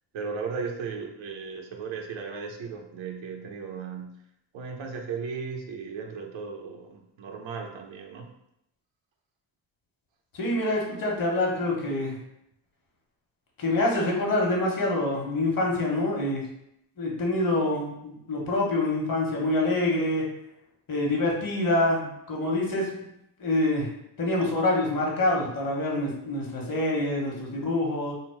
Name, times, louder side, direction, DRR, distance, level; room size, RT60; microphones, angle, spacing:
voice 1, 0.1-4.2 4.5-8.3, right 5 dB, 85° right, 3 dB, 0.8 m, -36 dB
voice 2, 10.3-12.2 13.6-16.4 17.0-20.3 20.9-23.0 23.4-23.9 24.2-28.1, left 2 dB, 50° left, -1 dB, 1.1 m, -26 dB
3.7 x 2.0 x 4.4 m, 0.78 s
cardioid pair, 130°, 45 cm